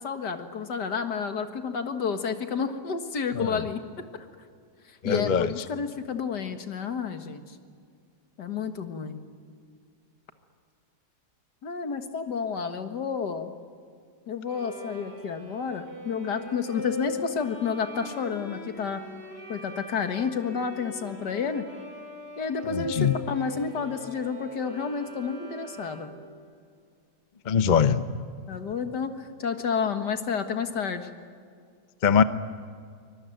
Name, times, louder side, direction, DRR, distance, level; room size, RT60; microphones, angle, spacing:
voice 1, 0.0-3.8 4.1-4.3 5.0-7.6 8.4-9.2 11.6-13.5 14.3-19.0 19.5-21.6 22.4-26.1 28.5-31.1, left 6 dB, 75° left, 7 dB, 2.2 m, -30 dB
voice 2, 5.0-5.5 22.7-23.2 27.4-28.0 32.0-32.2, left 7 dB, 35° left, 12 dB, 0.8 m, -22 dB
Bowed string instrument, 14.5-26.3, left 2 dB, 85° right, 6.6 m, -41 dB
24.5 x 21.5 x 9.2 m, 2.2 s
omnidirectional pair, 1.8 m